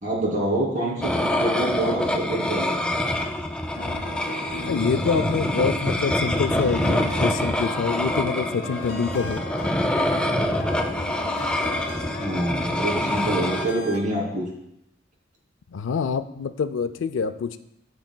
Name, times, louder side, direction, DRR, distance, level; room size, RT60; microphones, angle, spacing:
voice 1, 0.0-3.0 12.2-14.5, right 1 dB, 45° right, -3 dB, 2.5 m, -26 dB
sound 1, 1.0-13.6, left 1 dB, 5° left, 0.4 m, -26 dB
sound 2, 3.7-14.0, left 1 dB, 55° left, 1.3 m, -36 dB
voice 2, 4.7-9.4 15.7-17.6, left 5 dB, 75° left, 10 dB, 0.4 m, -26 dB
13.0 x 4.8 x 2.2 m, 0.81 s
head